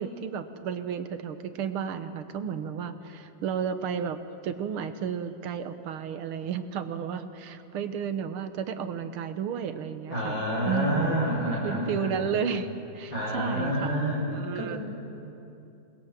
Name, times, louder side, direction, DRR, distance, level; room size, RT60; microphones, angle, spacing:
voice 1, 0.0-11.2 11.6-12.7 12.9-14.0 14.3-14.8, right 7 dB, 90° right, 10 dB, 2.0 m, -32 dB
voice 2, 10.1-12.3 13.1-14.3 14.5-14.8, equal, 60° left, -3 dB, 7.3 m, -28 dB
28.0 x 21.0 x 7.5 m, 2.8 s
omnidirectional pair, 2.3 m